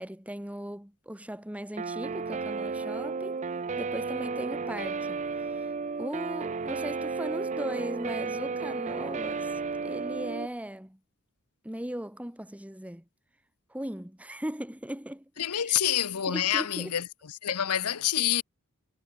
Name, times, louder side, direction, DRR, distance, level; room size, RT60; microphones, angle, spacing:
voice 1, 0.0-3.4 3.8-5.2 5.5-5.6 6.0-11.0 11.6-13.0 13.7-15.8 16.3-17.0 17.5-17.6, equal, 5° right, 1.6 m, -38 dB
Guitar, 1.8-10.5, right 4 dB, 30° right, 0.5 m, -33 dB
voice 2, 15.4-17.0 17.4-18.4, left 10 dB, 90° left, 0.9 m, -27 dB
head